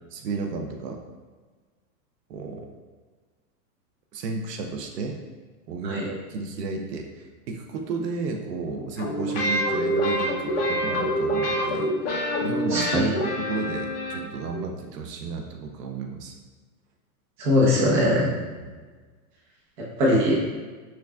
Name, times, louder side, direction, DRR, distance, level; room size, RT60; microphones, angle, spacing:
voice 1, 0.1-1.0 2.3-2.7 4.1-5.2 5.7-16.4 18.6-18.8, right 4 dB, 85° right, 3 dB, 0.7 m, -33 dB
sound 1, 9.0-14.6, equal, 40° left, 0.7 m, -26 dB
voice 2, 12.7-13.0 17.4-18.3 20.0-20.4, left 1 dB, 30° right, -5 dB, 0.8 m, -21 dB
5.9 x 2.4 x 2.3 m, 1.4 s
supercardioid pair, 170°, 47 cm